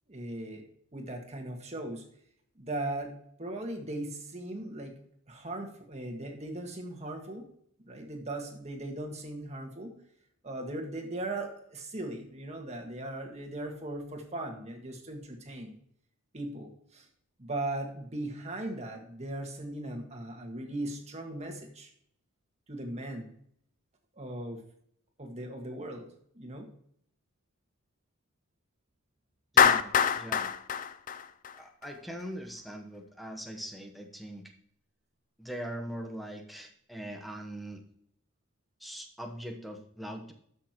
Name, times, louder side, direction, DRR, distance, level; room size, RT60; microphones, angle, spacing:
voice 1, 0.1-0.6 0.9-2.0 2.6-3.1 3.4-5.0 5.3-7.5 7.8-9.9 10.4-15.8 16.3-17.1 17.4-21.9 22.7-23.3 24.2-24.6 25.2-26.1 26.3-26.7, right 1 dB, 30° right, 2 dB, 1.7 m, -38 dB
voice 2, 29.5-30.5 31.5-34.5 35.4-37.8 38.8-40.3, equal, ahead, 2 dB, 1.0 m, -41 dB
Clapping, 29.6-31.9, left 7 dB, 35° left, 0.4 m, -24 dB
12.5 x 6.5 x 3.0 m, 0.66 s
head